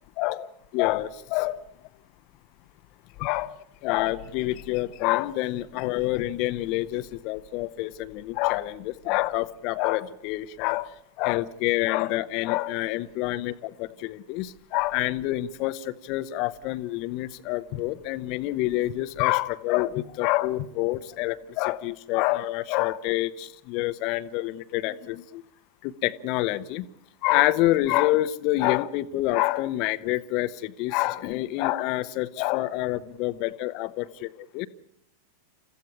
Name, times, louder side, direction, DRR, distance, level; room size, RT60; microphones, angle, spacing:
voice 1, 0.2-1.6 3.2-3.5 3.8-13.5 13.8-25.4 25.8-26.9 27.2-34.3 34.5-34.7, left 17 dB, 45° left, 15 dB, 1.0 m, -27 dB
29.5 x 15.0 x 8.6 m, 0.75 s
figure-of-eight pair, 90°, 0 cm